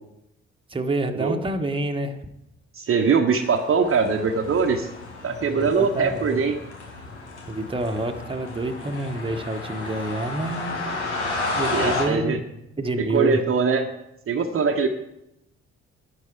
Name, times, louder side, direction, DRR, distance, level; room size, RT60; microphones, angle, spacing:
voice 1, 0.7-2.2 5.4-6.4 7.5-10.8 11.5-12.4 12.8-13.4, right 2 dB, 15° right, 4 dB, 1.3 m, -28 dB
voice 2, 2.7-4.9 5.2-6.6 11.7-12.4 13.0-13.9 14.3-14.9, right 5 dB, 40° right, 4 dB, 1.1 m, -22 dB
sound 1, 3.4-12.1, left 3 dB, 80° left, 1.5 m, -32 dB
11.0 x 10.5 x 4.8 m, 0.86 s
figure-of-eight pair, 40°, 34 cm